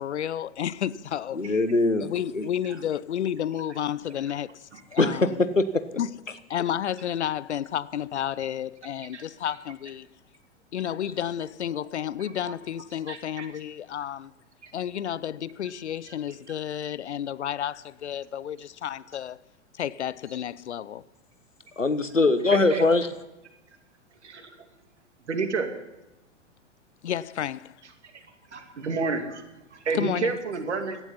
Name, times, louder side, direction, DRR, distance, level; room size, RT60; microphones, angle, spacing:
voice 1, 0.0-1.5 2.0-5.4 6.0-6.1 6.5-10.1 10.7-14.3 14.7-19.4 19.7-21.0 27.0-27.8 29.9-30.4, left 10 dB, 65° left, 0.6 m, -31 dB
voice 2, 1.3-2.1 2.3-2.4 5.0-5.7 21.8-23.1, left 3 dB, 90° left, 1.2 m, -22 dB
voice 3, 9.1-9.5 11.8-11.9 12.4-12.5 13.1-13.5 14.6-14.7 16.1-16.2 22.5-22.8 24.2-24.6 25.3-25.7 28.1-28.2 28.5-31.0, right 4 dB, 65° right, 2.7 m, -31 dB
17.0 x 12.0 x 5.6 m
figure-of-eight pair, 105°, 37 cm